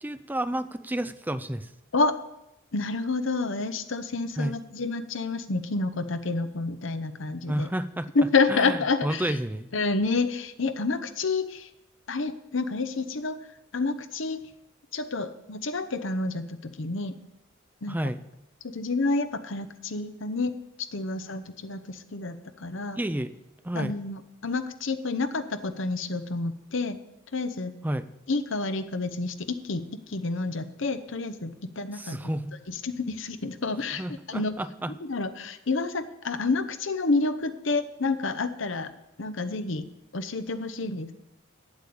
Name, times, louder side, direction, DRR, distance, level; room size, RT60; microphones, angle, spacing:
voice 1, 0.0-1.7 4.4-4.6 7.5-8.1 8.5-9.7 17.9-18.2 23.0-23.3 23.6-24.0 27.8-28.1 31.9-32.5 33.9-34.9, right 1 dB, 10° right, 12 dB, 0.4 m, -30 dB
voice 2, 2.7-7.7 8.1-9.4 9.7-11.7 12.1-13.4 13.7-14.4 14.9-17.2 17.8-18.0 18.6-20.5 20.9-23.0 23.7-27.0 27.3-27.7 28.3-32.2 32.7-34.6 34.9-38.9 39.2-39.9 40.1-41.1, left 3 dB, 60° left, 11 dB, 0.8 m, -29 dB
8.3 x 8.2 x 8.5 m, 0.88 s
head